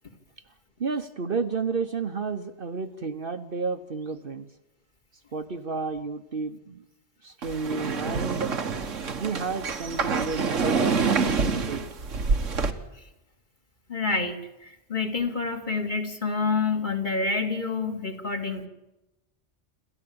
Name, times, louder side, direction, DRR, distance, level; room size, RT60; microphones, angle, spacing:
voice 1, 0.8-4.5 5.3-6.8 7.2-8.5 9.2-11.8, right 4 dB, 50° right, 8 dB, 1.2 m, -31 dB
sound 1, 7.4-12.7, right 4 dB, 90° right, 1.8 m, -27 dB
voice 2, 13.9-18.7, left 4 dB, 40° left, 4 dB, 2.6 m, -28 dB
27.5 x 14.0 x 8.7 m, 0.98 s
omnidirectional pair, 1.2 m